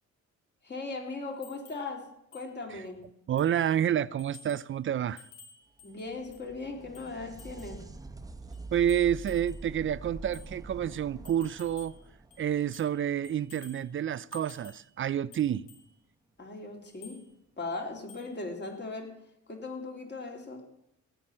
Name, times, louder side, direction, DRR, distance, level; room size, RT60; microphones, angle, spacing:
voice 1, 0.6-2.0 2.3-3.0 5.8-7.8 16.4-17.2 17.6-19.1 19.5-20.6, left 3 dB, 35° left, 3.4 m, -38 dB
sound 1, 1.4-1.9 2.3-2.5 2.9-3.0 3.4-3.6 4.2-4.7 5.2-6.5 6.9-7.8 8.5-9.7 10.3-10.5 11.2-12.0 12.3-13.0 13.2-13.9 14.3-14.9 15.3-15.9 16.9-17.2 18.1-18.4 18.6-18.8, left 6 dB, 90° left, 3.9 m, -53 dB
voice 2, 3.3-5.2 8.7-12.0 12.4-15.7, right 10 dB, 40° right, 0.5 m, -29 dB
sound 2, 5.8-13.4 16.8-16.9 17.9-18.0, right 3 dB, 10° right, 1.0 m, -45 dB
17.0 x 5.8 x 8.8 m
cardioid pair, 90°, 30 cm